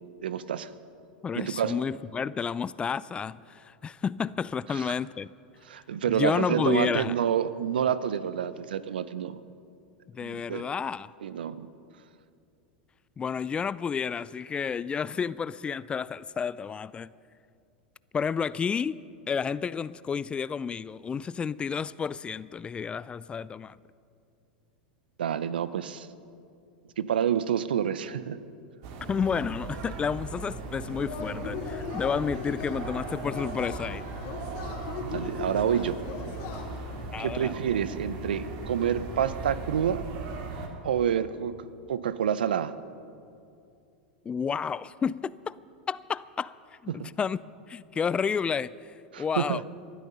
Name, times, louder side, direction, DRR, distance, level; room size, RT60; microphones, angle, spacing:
voice 1, 0.2-0.7 1.3-1.8 4.7-5.0 5.7-9.4 10.2-10.7 11.2-11.7 25.2-26.1 27.0-28.4 35.0-36.0 37.2-40.1 40.8-42.7 46.9-47.1 49.1-49.6, right 9 dB, 80° right, 0.7 m, -28 dB
voice 2, 1.2-5.3 6.1-7.1 10.1-11.1 13.2-17.1 18.1-19.0 19.3-23.8 29.1-34.0 37.1-37.5 44.3-45.6 45.9-46.6 46.8-47.4 47.7-49.6, left 6 dB, 20° left, 0.3 m, -31 dB
sound 1, 28.8-40.7, right 3 dB, 60° right, 2.5 m, -38 dB
Yell / Cheering, 30.9-37.0, left 5 dB, 55° left, 2.5 m, -39 dB
19.5 x 12.5 x 5.5 m
hypercardioid pair, 95°, 5 cm